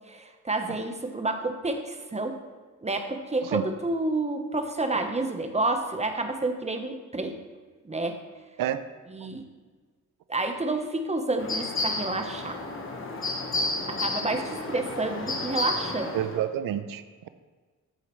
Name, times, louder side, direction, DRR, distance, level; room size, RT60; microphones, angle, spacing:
voice 1, 0.1-2.4 2.8-7.4 7.8-8.2 9.1-9.4 10.3-12.6 13.9-16.1, right 2 dB, 20° right, 6 dB, 1.0 m, -29 dB
sound 1, 11.4-16.4, left 2 dB, 35° left, 1.3 m, -31 dB
voice 2, 16.1-17.3, right 11 dB, 70° right, 11 dB, 0.6 m, -29 dB
14.0 x 4.8 x 3.1 m, 1.4 s
cardioid pair, 65°, 35 cm